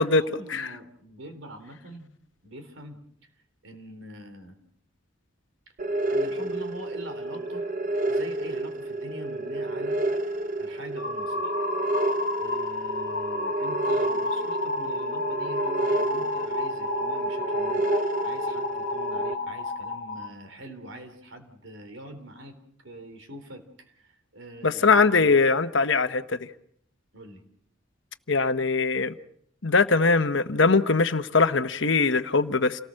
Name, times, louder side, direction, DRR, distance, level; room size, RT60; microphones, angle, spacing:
voice 1, 0.1-2.1 2.4-3.0 3.6-4.6 6.1-7.7 8.1-10.0 10.6-11.5 12.4-22.6 22.8-25.4 27.1-27.4, right 1 dB, 70° right, 3.7 m, -44 dB
sound 1, 5.8-19.3, right 2 dB, 40° right, 1.0 m, -30 dB
sound 2, 11.0-20.3, left 2 dB, 50° left, 1.4 m, -31 dB
voice 2, 24.6-26.4 28.3-29.1 29.6-32.8, left 4 dB, 65° left, 1.0 m, -21 dB
28.5 x 19.0 x 6.4 m
head